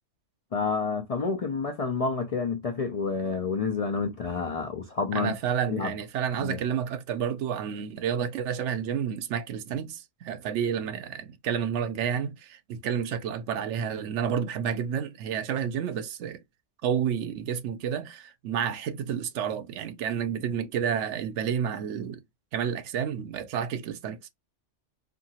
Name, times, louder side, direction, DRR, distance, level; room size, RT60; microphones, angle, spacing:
voice 1, 0.5-5.3 5.7-5.9 6.4-6.6, left 4 dB, 65° left, 0.3 m, -29 dB
voice 2, 5.1-16.4 16.8-22.2 22.5-24.3, right 8 dB, 80° right, 0.9 m, -30 dB
2.7 x 2.5 x 2.7 m
omnidirectional pair, 1.2 m